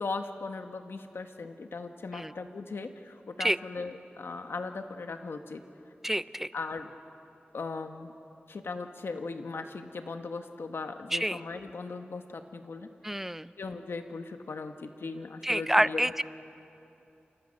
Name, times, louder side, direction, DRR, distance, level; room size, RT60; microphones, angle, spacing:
voice 1, 0.0-5.6 6.5-6.9 7.5-8.1 8.5-12.9 13.6-16.2, left 4 dB, 85° left, 6 dB, 1.3 m, -38 dB
voice 2, 6.0-6.5 11.1-11.4 13.0-13.5 15.4-16.2, right 1 dB, 10° right, 16 dB, 0.5 m, -27 dB
30.0 x 27.5 x 6.5 m, 2.8 s
wide cardioid pair, 85°, 4 cm